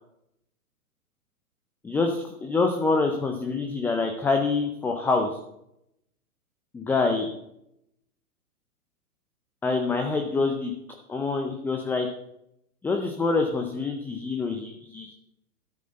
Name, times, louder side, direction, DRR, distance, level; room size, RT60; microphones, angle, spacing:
voice 1, 1.8-5.3 6.7-7.3 9.6-10.7 11.1-12.1 12.8-15.2, left 3 dB, 5° left, 4 dB, 0.5 m, -26 dB
12.5 x 8.5 x 6.4 m, 0.79 s
hypercardioid pair, 120°, 46 cm